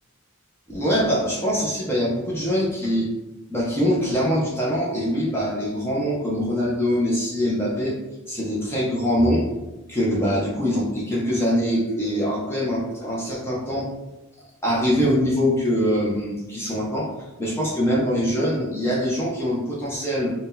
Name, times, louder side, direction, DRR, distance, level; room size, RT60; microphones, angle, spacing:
voice 1, 0.7-3.1 3.5-7.9 8.3-9.5 9.9-13.9 14.6-17.1 17.4-20.3, equal, 10° left, -5 dB, 0.5 m, -23 dB
2.6 x 2.1 x 3.6 m, 1.0 s
head